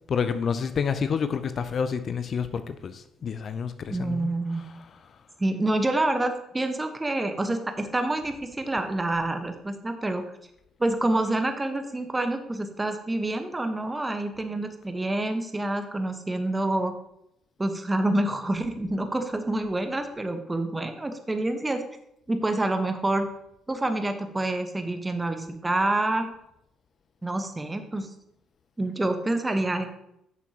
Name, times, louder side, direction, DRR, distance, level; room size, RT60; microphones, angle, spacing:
voice 1, 0.1-4.3, left 6 dB, 45° left, 11 dB, 0.5 m, -28 dB
voice 2, 3.9-4.6 5.4-10.2 10.8-16.9 17.6-21.8 22.3-23.3 23.7-26.3 27.2-28.1 28.8-29.9, right 2 dB, 20° right, 7 dB, 1.1 m, -27 dB
10.5 x 7.0 x 2.9 m, 0.79 s
figure-of-eight pair, 45°, 0 cm